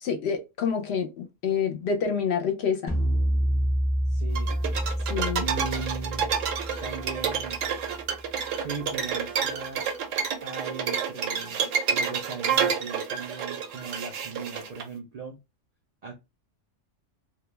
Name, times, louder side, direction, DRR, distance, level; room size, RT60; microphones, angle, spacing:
voice 1, 0.0-2.9 5.1-5.4, left 6 dB, 65° left, 0.8 m, -27 dB
sound 1, 2.9-8.2, equal, 20° left, 0.3 m, -28 dB
voice 2, 4.1-4.6 5.4-6.3 6.8-7.6 8.6-10.0 10.4-15.4 16.0-16.2, right 5 dB, 70° right, 0.3 m, -38 dB
sound 2, 4.4-14.8, right 6 dB, 90° right, 1.0 m, -29 dB
2.3 x 2.2 x 3.1 m
omnidirectional pair, 1.3 m